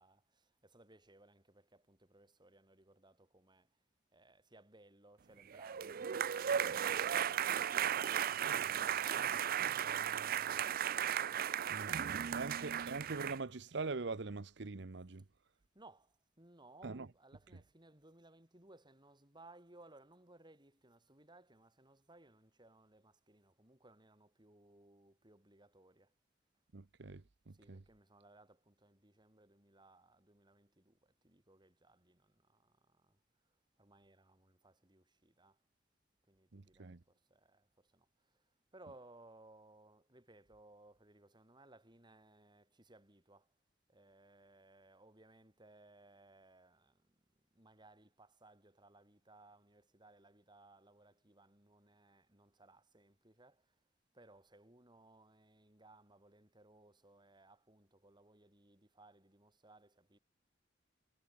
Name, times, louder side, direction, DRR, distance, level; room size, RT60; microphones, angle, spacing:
voice 1, 0.0-3.8 4.1-12.7 15.7-26.1 27.5-35.6 36.3-43.5 43.9-47.2 47.5-53.8 54.1-60.2, right 2 dB, 25° right, 4.4 m, -63 dB
sound 1, 5.5-13.4, right 9 dB, 50° right, 0.5 m, -36 dB
voice 2, 11.7-15.2 16.8-17.1 26.7-27.8 36.5-37.0, right 3 dB, 70° right, 0.9 m, -43 dB
head